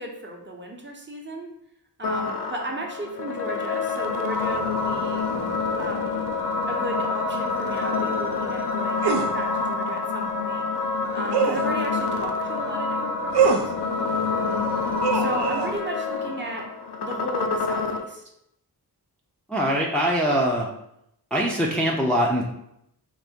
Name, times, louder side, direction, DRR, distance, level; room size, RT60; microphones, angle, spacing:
voice 1, 0.0-1.5 2.0-5.3 5.8-6.3 6.7-10.6 11.1-13.7 14.4-14.8 15.1-16.7 17.0-18.2, right 1 dB, 30° right, 1 dB, 0.7 m, -34 dB
sound 1, 2.0-18.0, left 4 dB, 80° left, 0.6 m, -27 dB
sound 2, 9.0-9.3 11.3-11.7 13.3-13.7 15.0-15.7, right 5 dB, 75° right, 0.5 m, -22 dB
voice 2, 19.5-20.7 21.3-22.4, equal, 5° left, -2 dB, 0.5 m, -22 dB
4.0 x 2.6 x 3.6 m, 0.78 s
wide cardioid pair, 85°, 39 cm